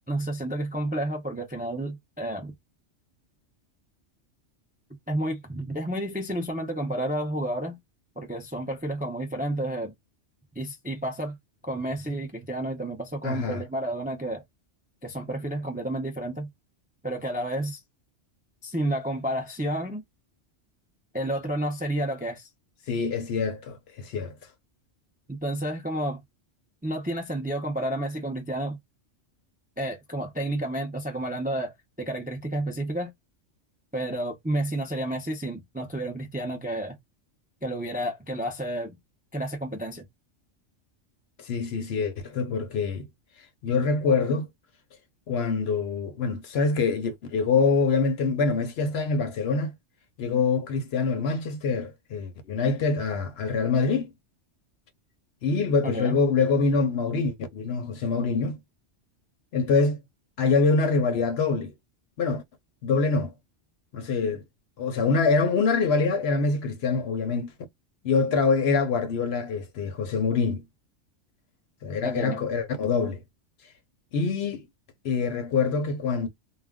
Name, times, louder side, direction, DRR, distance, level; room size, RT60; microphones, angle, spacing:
voice 1, 0.1-2.5 5.1-7.8 8.2-9.9 10.6-11.4 11.6-14.4 15.0-16.5 17.0-17.8 18.6-20.0 21.1-22.5 25.3-26.2 26.8-28.8 29.8-31.7 32.0-33.1 33.9-37.0 37.6-39.0 39.3-40.1 55.8-56.2 72.0-72.4, right 1 dB, 15° right, 0.3 m, -30 dB
voice 2, 13.2-13.6 22.9-24.4 41.4-43.1 43.6-44.5 45.3-49.7 50.2-54.1 55.4-58.6 59.5-60.0 60.4-61.7 62.2-62.4 62.8-63.3 63.9-64.4 64.8-67.5 68.0-70.6 71.8-73.2 74.1-74.7 75.0-76.3, left 4 dB, 65° left, 0.8 m, -25 dB
2.3 x 2.1 x 3.5 m
omnidirectional pair, 1.2 m